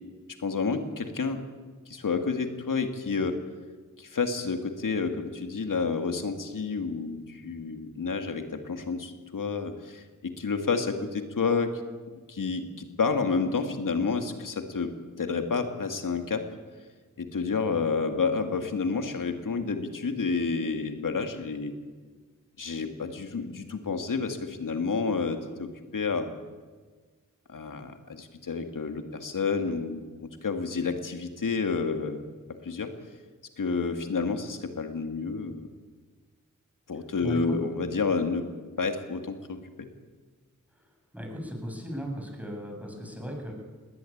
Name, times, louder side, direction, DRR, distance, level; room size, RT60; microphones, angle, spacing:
voice 1, 0.4-1.4 1.9-3.4 4.0-11.8 12.3-14.9 15.2-16.5 17.2-21.7 22.6-26.3 27.5-32.2 32.6-32.9 33.6-35.7 36.9-38.5 38.8-39.9, left 4 dB, 80° left, 6 dB, 2.3 m, -30 dB
voice 2, 37.2-37.6 41.1-43.5, equal, 5° right, 1 dB, 7.7 m, -36 dB
20.5 x 19.0 x 8.8 m, 1.4 s
cardioid pair, 45°, 32 cm